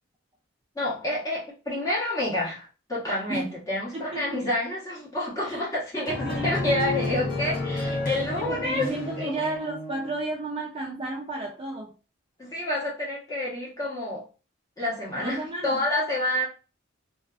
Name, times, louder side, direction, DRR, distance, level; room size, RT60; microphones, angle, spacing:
voice 1, 0.7-8.9 9.2-9.3 12.4-14.2 14.8-16.4, left 1 dB, 15° left, -6 dB, 0.9 m, -29 dB
voice 2, 3.9-4.4 5.4-5.6 6.2-6.7 8.3-11.9 15.2-15.8, right 2 dB, 25° right, -1 dB, 0.3 m, -33 dB
sound 1, 6.1-10.2, left 2 dB, 45° left, 0.7 m, -31 dB
2.4 x 2.3 x 2.3 m, 0.34 s
head